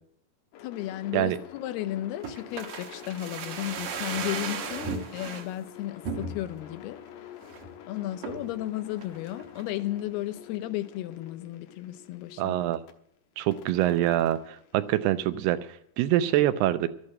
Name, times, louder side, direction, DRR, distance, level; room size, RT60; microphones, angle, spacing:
sound 1, 0.5-12.9 13.5-15.6, left 9 dB, 70° left, 2.6 m, -48 dB
voice 1, 0.6-7.0 7.9-12.6, left 14 dB, 85° left, 2.8 m, -34 dB
sound 2, 2.2-5.5 6.0-6.7 7.1-7.2 7.4-7.7 8.2-8.6 9.0-9.7 10.0-10.1, right 5 dB, 60° right, 2.4 m, -36 dB
voice 2, 12.4-12.8 13.4-15.6 16.0-16.9, right 13 dB, 85° right, 2.8 m, -25 dB
13.0 x 8.5 x 7.5 m
omnidirectional pair, 4.5 m